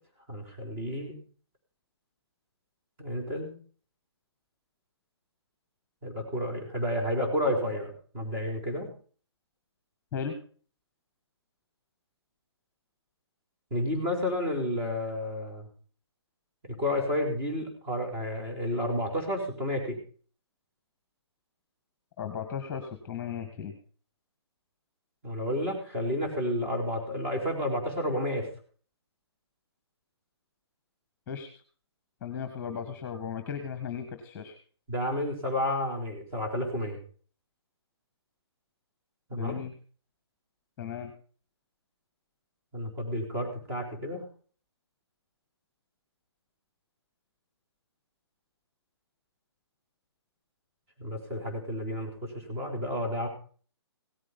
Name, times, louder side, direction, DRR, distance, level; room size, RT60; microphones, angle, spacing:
voice 1, 0.3-1.2 3.0-3.5 6.0-8.9 13.7-15.7 16.7-20.0 25.2-28.5 34.9-37.0 39.3-39.6 42.7-44.2 51.0-53.3, left 1 dB, 30° right, 1 dB, 4.5 m, -31 dB
voice 2, 22.2-23.7 31.3-31.5 32.2-34.6 39.3-39.7 40.8-41.1, left 7 dB, 15° left, 7 dB, 1.6 m, -36 dB
17.0 x 8.4 x 5.4 m, 0.43 s
hypercardioid pair, 165°, 14 cm